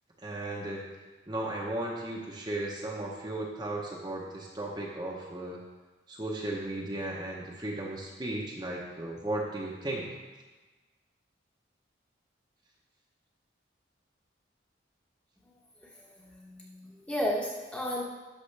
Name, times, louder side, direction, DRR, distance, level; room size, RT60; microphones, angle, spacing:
voice 1, 0.2-0.8 1.3-5.6 6.1-10.1, right 1 dB, 25° right, -3 dB, 0.9 m, -35 dB
voice 2, 15.8-18.0, equal, 5° left, -3 dB, 1.1 m, -34 dB
11.5 x 6.3 x 3.3 m, 1.2 s
head